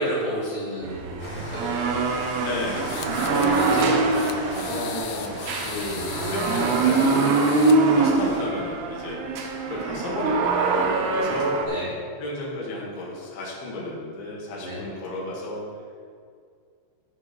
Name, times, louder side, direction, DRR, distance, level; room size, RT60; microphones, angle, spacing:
voice 1, 0.0-2.2 3.2-3.9 11.6-11.9 14.6-14.8, equal, 45° right, -8 dB, 1.1 m, -31 dB
sound 1, 0.8-11.7, right 3 dB, 85° right, 2.3 m, -24 dB
Rain, 1.2-8.4, left 1 dB, 45° left, 1.2 m, -38 dB
voice 2, 2.4-3.1 3.7-4.0 4.6-7.4 7.9-9.3 9.7-10.6 11.1-11.5 12.2-15.7, left 1 dB, 65° left, -4 dB, 3.5 m, -32 dB
sound 2, 2.8-7.8, left 10 dB, 85° left, 3.0 m, -38 dB
14.0 x 5.7 x 3.2 m, 2.2 s
omnidirectional pair, 5.3 m